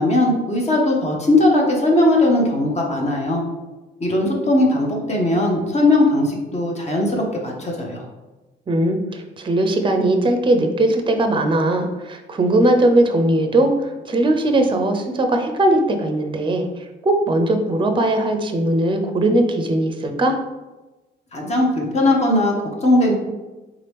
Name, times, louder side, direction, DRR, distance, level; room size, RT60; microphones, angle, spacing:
voice 1, 0.0-3.4 4.0-8.0 21.3-23.1, left 1 dB, 35° left, -1 dB, 0.8 m, -18 dB
voice 2, 8.7-16.7 17.0-20.4, right 1 dB, 25° right, 6 dB, 0.5 m, -19 dB
3.6 x 2.8 x 3.4 m, 1.1 s
cardioid pair, 90°, 20 cm